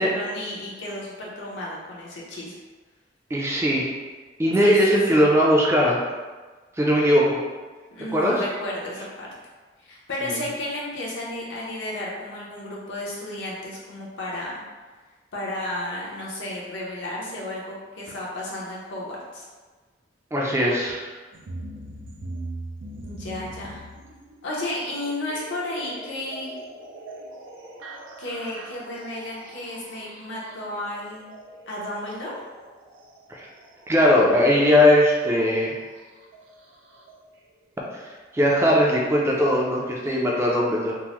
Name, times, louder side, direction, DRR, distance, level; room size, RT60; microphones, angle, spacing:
voice 1, 0.0-2.5 4.6-4.7 5.1-5.2 7.9-9.3 9.8-14.6 15.3-19.5 23.0-23.8 24.4-26.6 28.2-31.3 31.7-32.3, left 1 dB, 75° left, -4 dB, 0.8 m, -33 dB
voice 2, 3.3-3.9 4.4-6.0 6.8-7.4 8.1-8.3 10.2-10.4 20.3-21.0 33.4-33.5 33.9-35.7 37.9-38.0 38.3-40.9, left 1 dB, 15° right, -3 dB, 0.4 m, -19 dB
sound 1, 21.3-37.2 38.4-38.5 39.3-39.4 40.1-40.2, right 1 dB, 90° right, 0.5 m, -42 dB
3.6 x 2.0 x 3.0 m, 1.4 s
head